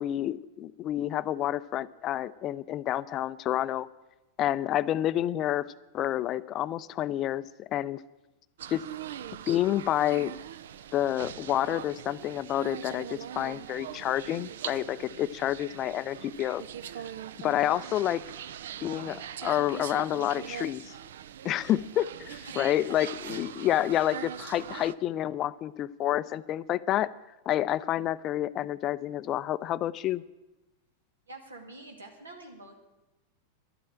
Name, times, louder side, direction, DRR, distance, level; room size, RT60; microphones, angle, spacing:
voice 1, 0.0-3.9 4.4-8.0 8.7-8.8 9.5-10.3 10.9-16.6 17.4-18.2 18.8-20.9 21.4-22.1 22.6-27.1 27.5-30.2, left 12 dB, 35° left, 17 dB, 0.4 m, -29 dB
sound 1, 8.6-24.9, right 10 dB, 60° right, 0.5 m, -41 dB
voice 2, 22.3-22.7 23.2-24.0 31.3-32.7, right 2 dB, 75° right, 3 dB, 2.2 m, -47 dB
11.5 x 8.5 x 8.7 m, 1.0 s
figure-of-eight pair, 90°, 0 cm